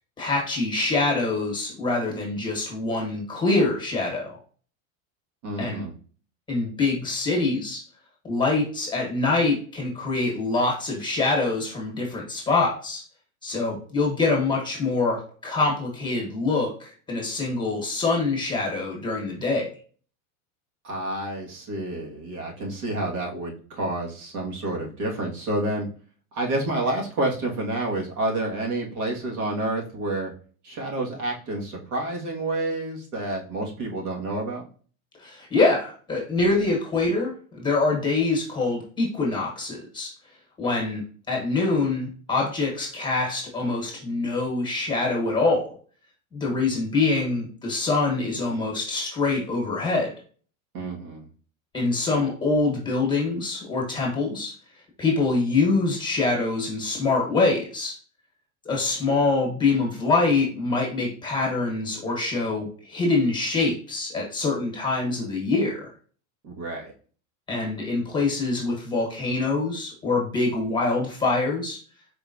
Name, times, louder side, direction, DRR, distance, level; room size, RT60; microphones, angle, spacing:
voice 1, 0.2-4.4 5.6-5.8 6.5-7.8 8.2-13.0 13.4-19.7 35.2-40.1 40.6-45.7 46.3-50.1 51.7-54.5 55.0-58.0 58.6-65.9 67.5-71.8, left 3 dB, 10° left, -2 dB, 1.1 m, -25 dB
voice 2, 5.4-5.9 20.8-25.9 26.3-30.3 30.6-34.6 50.7-51.3 66.4-66.9, right 2 dB, 85° right, -2 dB, 1.8 m, -29 dB
4.5 x 3.4 x 2.6 m, 0.42 s
supercardioid pair, 160°, 42 cm